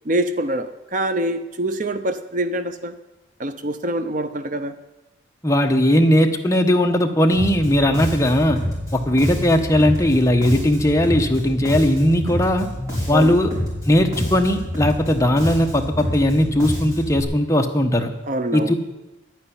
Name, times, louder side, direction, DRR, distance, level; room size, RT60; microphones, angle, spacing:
voice 1, 0.0-3.0 3.4-4.8 13.1-13.4 18.3-18.7, right 1 dB, 40° right, 10 dB, 0.6 m, -25 dB
voice 2, 5.4-8.6 8.9-12.7 13.1-13.5 13.8-18.1 18.5-18.7, left 1 dB, 15° left, 4 dB, 1.1 m, -18 dB
Bass guitar, 7.3-17.2, equal, 15° right, 5.3 m, -27 dB
11.0 x 9.5 x 10.0 m, 1.1 s
head